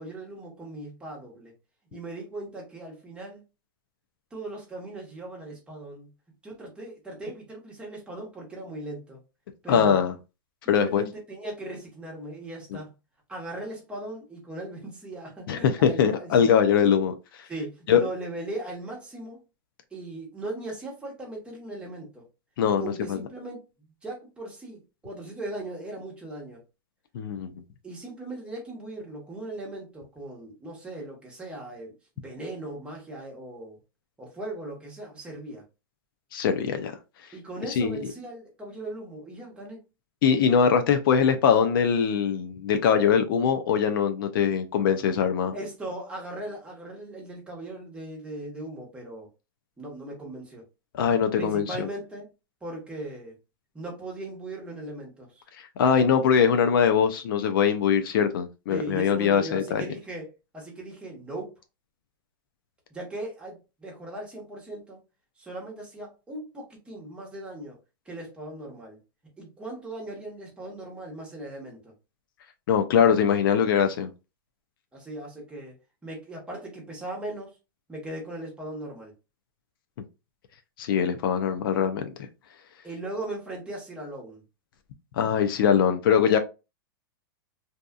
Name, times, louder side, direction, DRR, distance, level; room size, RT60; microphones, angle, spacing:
voice 1, 0.0-1.5 1.9-3.4 4.3-6.1 6.4-9.2 9.6-10.0 10.8-12.9 13.3-16.6 17.5-19.4 19.9-22.2 22.8-23.6 24.0-26.6 27.8-33.8 34.2-35.6 37.3-39.8 45.5-49.3 49.8-50.6 51.4-52.3 52.6-53.4 53.7-55.4 58.7-61.5 62.9-65.0 65.4-67.8 68.0-69.0 69.4-71.9 74.9-75.7 76.0-77.6 77.9-79.1 82.8-84.4, right 1 dB, 10° right, 0.9 m, -38 dB
voice 2, 9.7-10.1 10.7-11.0 15.5-17.1 17.9-18.0 22.6-23.2 27.1-27.6 36.3-36.9 37.8-38.0 40.2-45.5 50.9-51.9 55.8-59.8 72.7-74.1 80.8-82.1 85.2-86.4, left 7 dB, 65° left, 0.4 m, -22 dB
2.7 x 2.3 x 2.3 m
hypercardioid pair, 140°, 12 cm